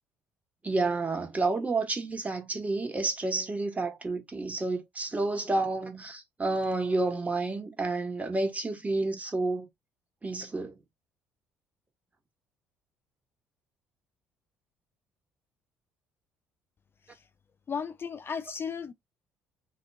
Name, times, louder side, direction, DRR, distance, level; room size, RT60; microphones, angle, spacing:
voice 1, 0.6-9.7 10.2-10.8, right 3 dB, 20° right, 1.4 m, -30 dB
voice 2, 17.7-18.9, left 6 dB, 35° left, 0.4 m, -35 dB
3.0 x 2.3 x 3.4 m
hypercardioid pair, 55°, 6 cm